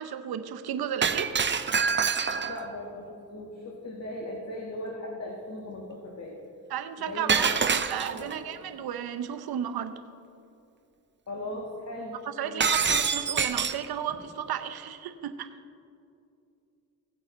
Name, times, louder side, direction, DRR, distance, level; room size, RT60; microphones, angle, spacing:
voice 1, 0.0-1.3 6.7-10.0 12.4-15.5, right 9 dB, 70° right, 9 dB, 0.7 m, -34 dB
Shatter, 1.0-2.7 7.3-8.3 12.6-13.9, right 6 dB, 30° right, 0.6 m, -26 dB
voice 2, 2.5-6.4 7.0-8.3 11.3-12.2 12.4-12.8 14.1-14.2, left 1 dB, 45° left, -1 dB, 1.5 m, -38 dB
16.5 x 8.2 x 3.1 m, 2.6 s
cardioid pair, 55°, 38 cm